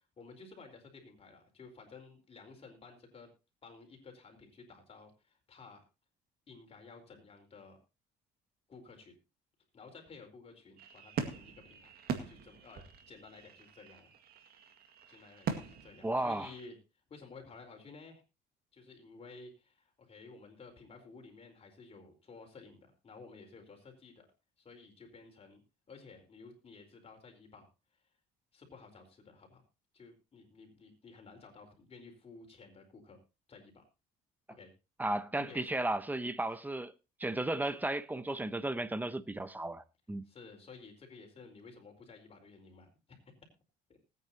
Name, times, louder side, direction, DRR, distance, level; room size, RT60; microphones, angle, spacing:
voice 1, 0.2-3.3 3.6-5.8 6.5-7.8 8.7-9.1 9.7-11.9 12.3-14.1 15.1-16.8 17.1-18.2 18.7-24.3 24.6-27.7 28.5-29.6 29.9-33.2 33.5-33.8 34.5-34.7 35.4-35.7 40.2-42.9 43.3-43.4 43.9-44.0, left 4 dB, 35° left, 4.6 m, -54 dB
sound 1, 10.8-16.7, right 6 dB, 65° right, 2.0 m, -42 dB
voice 2, 16.0-16.5 35.0-36.9 37.2-40.3, right 2 dB, 10° right, 0.8 m, -34 dB
20.0 x 9.3 x 2.9 m
cardioid pair, 110°, 17 cm